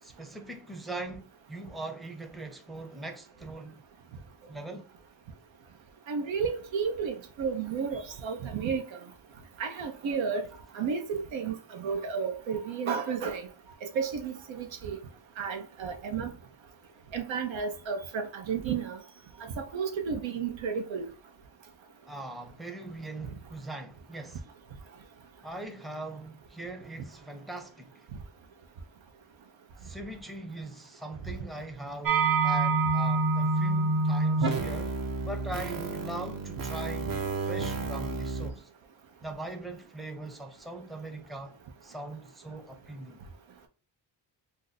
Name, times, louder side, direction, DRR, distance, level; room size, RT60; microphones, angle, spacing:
voice 1, 0.0-3.8 4.5-4.9 22.1-24.4 25.4-28.1 29.8-35.0 35.2-38.7 39.2-43.2, right 2 dB, ahead, 0.5 m, -41 dB
voice 2, 6.1-9.0 9.6-10.4 10.7-13.5 13.9-15.0 15.4-16.3 17.1-19.0 19.6-21.1, right 6 dB, 85° right, 0.8 m, -32 dB
sound 1, 32.1-38.5, right 3 dB, 50° right, 0.7 m, -28 dB
2.6 x 2.5 x 4.0 m
cardioid pair, 75°, 45 cm